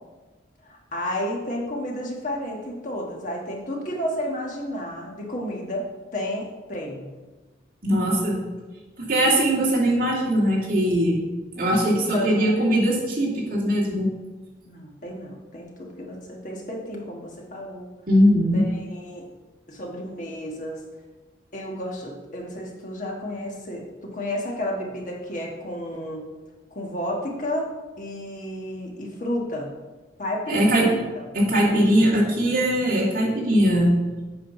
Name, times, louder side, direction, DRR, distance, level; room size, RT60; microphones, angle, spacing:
voice 1, 0.6-7.1 12.1-12.6 14.6-17.9 18.5-19.3 19.7-20.8 21.5-26.3 26.7-29.7 30.2-31.0, left 1 dB, 45° left, -1 dB, 1.4 m, -32 dB
voice 2, 7.8-8.4 9.0-11.3 11.5-14.1 18.1-18.6 30.5-30.9 31.3-34.0, equal, 50° right, -4 dB, 2.4 m, -20 dB
8.1 x 5.0 x 5.7 m, 1.2 s
head